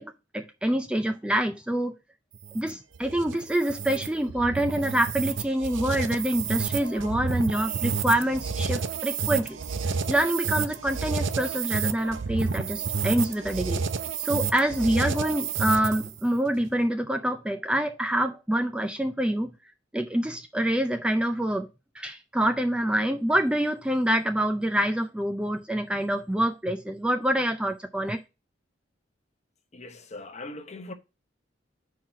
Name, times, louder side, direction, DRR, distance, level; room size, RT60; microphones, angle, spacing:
voice 1, 0.0-1.9 2.5-9.6 10.1-13.8 14.2-19.5 19.9-21.7 21.9-28.2, right 1 dB, 5° right, 0.4 m, -26 dB
sound 1, 2.3-16.2, right 5 dB, 75° right, 0.6 m, -30 dB
voice 2, 29.7-30.9, left 2 dB, 35° left, 0.9 m, -40 dB
5.7 x 4.7 x 5.6 m
head